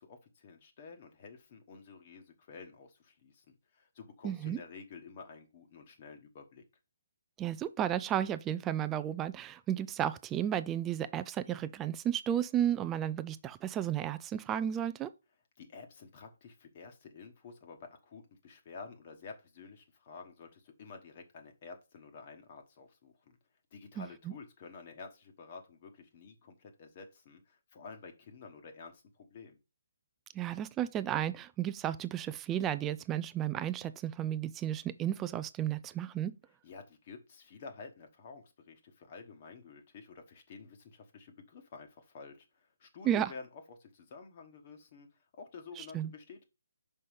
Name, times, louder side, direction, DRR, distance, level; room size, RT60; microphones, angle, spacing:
voice 1, 0.0-3.4 3.7-6.6 15.6-23.4 23.7-29.6 36.6-45.1 45.4-46.4, left 4 dB, 30° left, 1.2 m, -50 dB
voice 2, 4.2-4.6 7.4-15.1 24.0-24.3 30.3-36.3 43.0-43.3 45.8-46.1, right 10 dB, 15° right, 0.3 m, -33 dB
5.4 x 5.3 x 5.0 m
figure-of-eight pair, 140°, 0 cm